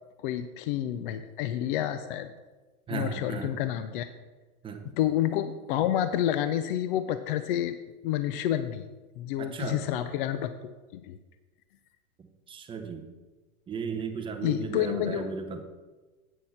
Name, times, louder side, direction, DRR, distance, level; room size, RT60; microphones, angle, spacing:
voice 1, 0.2-2.3 2.9-4.1 5.0-7.8 8.0-8.8 9.2-11.2 14.4-15.3, left 11 dB, 40° left, 11 dB, 0.4 m, -29 dB
voice 2, 2.9-3.6 4.6-4.9 9.4-9.9 12.2-13.1 13.7-15.6, right 6 dB, 10° right, 4 dB, 0.8 m, -36 dB
9.1 x 6.3 x 5.7 m, 1.3 s
hypercardioid pair, 140°, 43 cm